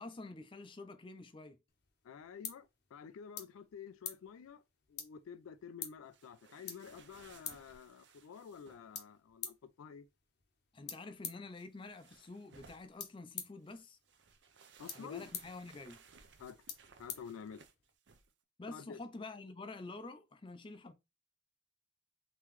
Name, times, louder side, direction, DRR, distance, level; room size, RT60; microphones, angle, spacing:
voice 1, 0.0-1.6 10.7-14.0 14.9-16.0 18.6-20.9, left 3 dB, 25° left, 0.4 m, -48 dB
sound 1, 1.7-18.0, left 8 dB, 50° left, 0.8 m, -50 dB
voice 2, 2.0-4.6 4.9-10.1 14.8-15.2 16.4-16.7 17.0-17.6 18.7-19.0, left 7 dB, 90° left, 0.3 m, -50 dB
sound 2, 6.1-9.0 11.5-13.1 13.6-18.3, right 5 dB, 55° right, 0.5 m, -62 dB
3.7 x 2.9 x 3.0 m
head